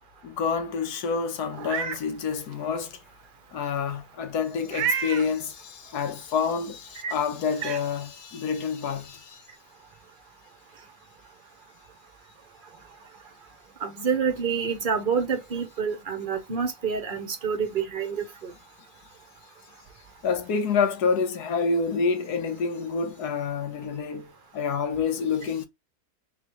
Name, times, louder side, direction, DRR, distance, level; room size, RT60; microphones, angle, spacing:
voice 1, 0.2-3.0 3.5-9.4 20.2-25.7, left 5 dB, 85° left, 1.4 m, -28 dB
Meow, 1.5-2.0 2.5-2.6 4.7-5.3 6.9-7.0 7.5-7.8, right 7 dB, 90° right, 1.3 m, -29 dB
voice 2, 13.8-18.5, right 6 dB, 45° right, 0.8 m, -28 dB
4.0 x 3.4 x 2.8 m
omnidirectional pair, 1.6 m